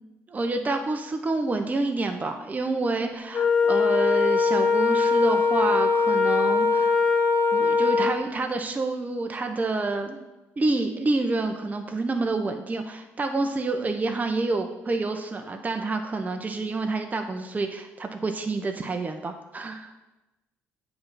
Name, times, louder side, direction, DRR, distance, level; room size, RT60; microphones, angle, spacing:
voice 1, 0.3-7.0 7.5-10.2 10.6-19.9, right 3 dB, 30° right, 4 dB, 0.8 m, -28 dB
Wind instrument woodwind instrument, 3.3-8.2, left 4 dB, 35° left, 1.0 m, -21 dB
7.8 x 3.4 x 5.6 m, 1.0 s
supercardioid pair, 70°, 6 cm